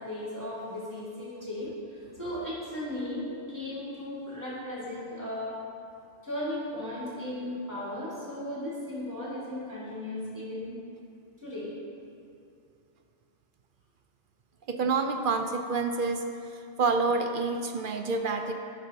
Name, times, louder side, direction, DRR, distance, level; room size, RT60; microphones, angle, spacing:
voice 1, 0.0-5.6 6.2-10.7 11.4-11.7, left 1 dB, 15° right, -8 dB, 2.1 m, -36 dB
voice 2, 14.7-16.2 16.5-18.5, right 4 dB, 60° right, 5 dB, 0.6 m, -28 dB
16.0 x 5.4 x 2.8 m, 2.5 s
omnidirectional pair, 1.2 m